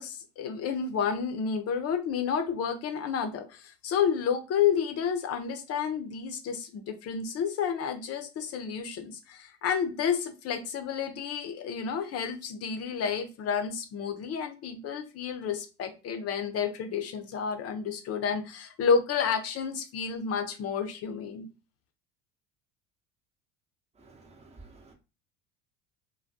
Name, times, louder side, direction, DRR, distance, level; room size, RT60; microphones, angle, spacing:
voice 1, 0.0-21.5, left 7 dB, 40° left, 0.6 m, -30 dB
voice 2, 24.0-24.9, right 3 dB, 20° right, 0.7 m, -52 dB
2.2 x 2.2 x 2.6 m
hypercardioid pair, 75°, 36 cm